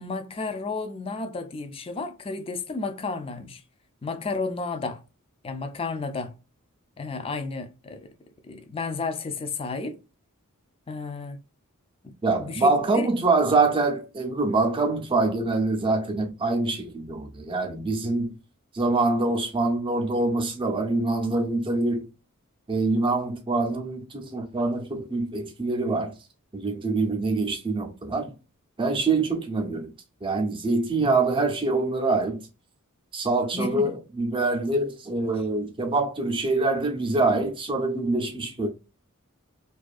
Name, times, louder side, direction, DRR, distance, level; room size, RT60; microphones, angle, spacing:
voice 1, 0.0-3.6 4.0-5.0 5.4-6.3 7.0-8.1 8.4-10.0 10.9-11.4 12.0-13.1 33.5-34.0, left 3 dB, 25° left, 0.4 m, -32 dB
voice 2, 12.2-18.4 18.7-22.1 22.7-26.1 26.5-28.3 28.8-29.9 30.2-32.4 33.1-38.7, right 3 dB, 25° right, 0.6 m, -25 dB
2.6 x 2.3 x 2.3 m
head